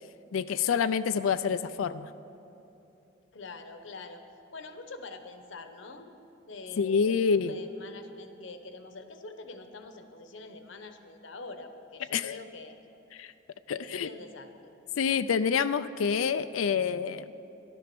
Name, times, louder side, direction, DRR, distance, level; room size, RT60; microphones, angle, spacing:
voice 1, 0.3-2.1 6.8-7.5 12.1-12.4 13.2-13.3 13.7-14.1 15.0-17.3, left 6 dB, 90° left, 12 dB, 0.4 m, -27 dB
voice 2, 3.3-4.2 4.5-6.1 6.5-12.8 13.7-14.7, left 3 dB, 70° left, 8 dB, 1.0 m, -45 dB
13.5 x 11.5 x 6.1 m, 2.9 s
head